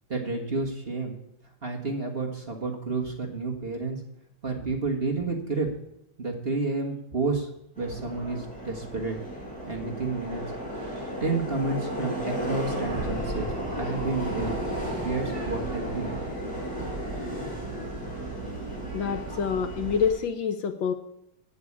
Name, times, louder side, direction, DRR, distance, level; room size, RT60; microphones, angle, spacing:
voice 1, 0.1-1.1 1.6-4.0 4.4-5.7 6.2-7.5 7.8-9.2 9.7-10.4 11.2-14.6 15.0-16.1, right 3 dB, 30° right, 0 dB, 1.5 m, -30 dB
Subway metro underground, 7.8-20.1, right 1 dB, 5° left, 4.5 m, -33 dB
voice 2, 18.9-20.9, left 6 dB, 70° left, 8 dB, 1.4 m, -27 dB
8.4 x 8.1 x 8.6 m, 0.83 s
omnidirectional pair, 2.4 m